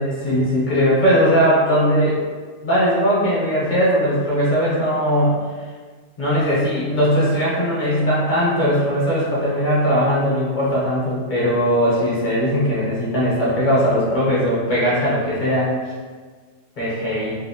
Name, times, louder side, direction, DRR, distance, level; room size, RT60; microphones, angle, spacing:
voice 1, 0.0-2.2 2.6-5.4 6.2-15.7 16.8-17.4, equal, 40° left, -8 dB, 1.2 m, -19 dB
2.8 x 2.8 x 2.8 m, 1.5 s
omnidirectional pair, 1.3 m